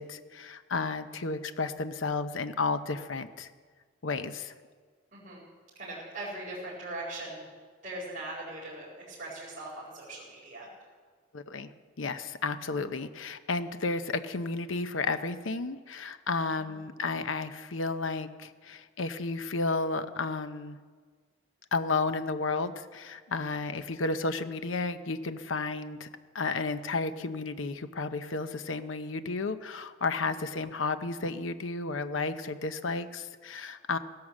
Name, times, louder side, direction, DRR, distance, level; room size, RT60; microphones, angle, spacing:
voice 1, 0.0-3.5 4.0-4.5 11.3-11.7 12.0-20.8 21.7-26.1 26.3-34.0, left 3 dB, 85° left, 10 dB, 0.8 m, -32 dB
voice 2, 5.1-5.4 5.7-7.5 7.8-10.7 16.6-16.8 30.2-30.5, right 2 dB, 40° right, -8 dB, 4.8 m, -40 dB
16.5 x 11.5 x 7.3 m, 1.5 s
head